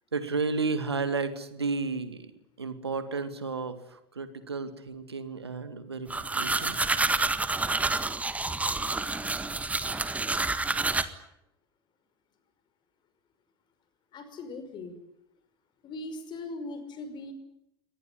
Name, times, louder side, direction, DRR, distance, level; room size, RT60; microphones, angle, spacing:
voice 1, 0.1-6.8, right 4 dB, 80° right, 11 dB, 2.2 m, -32 dB
sound 1, 6.1-11.0, right 3 dB, 10° right, 1.7 m, -28 dB
voice 2, 14.1-15.0 15.8-17.3, left 2 dB, 35° left, 10 dB, 5.4 m, -39 dB
24.0 x 20.0 x 9.9 m, 0.81 s
figure-of-eight pair, 75°, 13 cm